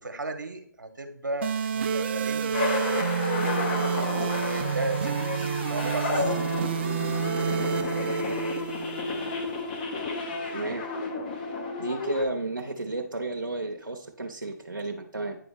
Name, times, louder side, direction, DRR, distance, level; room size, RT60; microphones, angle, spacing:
voice 1, 0.0-3.4 4.2-6.4, right 2 dB, 70° right, 7 dB, 1.1 m, -35 dB
sound 1, 1.4-9.4, right 7 dB, 35° right, 0.6 m, -29 dB
sound 2, 2.5-12.2, left 3 dB, 30° left, 0.9 m, -31 dB
voice 2, 10.5-10.9 11.8-15.4, right 2 dB, 85° right, 1 dB, 0.8 m, -32 dB
9.3 x 3.9 x 3.5 m, 0.63 s
figure-of-eight pair, 140°, 11 cm